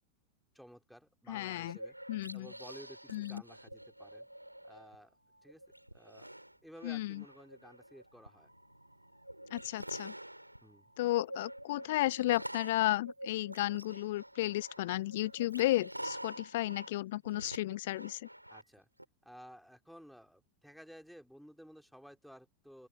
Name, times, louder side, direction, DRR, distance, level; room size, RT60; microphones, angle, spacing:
voice 1, 0.5-2.0 2.3-4.3 4.6-5.2 5.4-5.6 5.9-6.3 6.6-8.5 10.6-10.9 18.5-18.9 19.2-22.9, equal, ahead, 3.9 m, -54 dB
voice 2, 1.3-1.8 2.1-2.5 3.1-3.4 6.8-7.2 9.5-10.1 11.0-18.3, left 16 dB, 55° left, 1.4 m, -33 dB
sound 1, 1.5-5.0 5.4-19.0, right 1 dB, 90° right, 4.7 m, -48 dB
open air
figure-of-eight pair, 90°, 0 cm